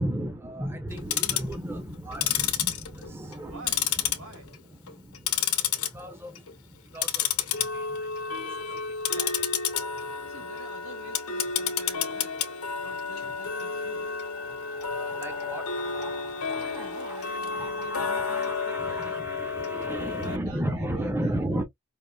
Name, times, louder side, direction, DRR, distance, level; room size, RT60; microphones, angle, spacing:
voice 1, 0.0-3.7 4.8-8.1 8.4-8.8 9.1-9.5 14.6-17.2 17.5-21.6, right 1 dB, 10° right, 0.7 m, -35 dB
Tick-tock, 0.9-1.5 2.1-3.4 3.7-4.5 4.9-5.9 6.3-6.5 6.9-20.4, left 7 dB, 85° left, 0.9 m, -30 dB
voice 2, 3.4-4.5 10.3-12.4 12.7-14.2 16.3-19.2 19.9-21.6, right 2 dB, 70° right, 1.6 m, -47 dB
5.2 x 2.7 x 2.3 m
head